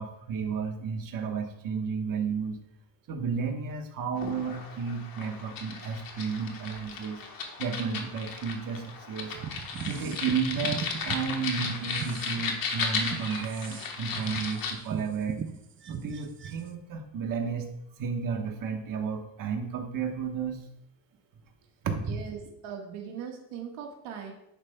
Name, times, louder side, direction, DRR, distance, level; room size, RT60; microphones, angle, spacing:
voice 1, 0.0-2.6 3.1-7.2 7.6-9.4 9.9-15.4 15.9-17.7 18.0-20.6 21.8-22.1, right 6 dB, 45° right, 4 dB, 1.2 m, -32 dB
sound 1, 4.1-14.7, left 5 dB, 45° left, 1.3 m, -35 dB
sound 2, 9.3-11.2 11.6-16.7, right 7 dB, 30° right, 0.4 m, -38 dB
voice 2, 22.0-24.3, right 7 dB, 85° right, 1 dB, 1.5 m, -40 dB
11.0 x 8.8 x 2.2 m, 0.79 s
cardioid pair, 170°, 47 cm